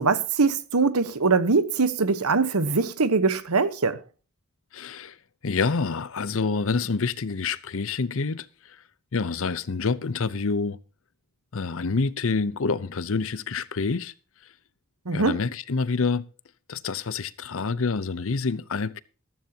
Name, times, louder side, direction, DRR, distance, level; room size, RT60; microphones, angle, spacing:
voice 1, 0.0-4.0 15.1-15.4, right 4 dB, 85° right, 1.1 m, -22 dB
voice 2, 4.7-5.1 5.4-8.5 9.1-10.8 11.5-14.1 15.1-16.2 16.7-19.0, left 4 dB, 65° left, 0.7 m, -27 dB
14.5 x 14.0 x 2.8 m
head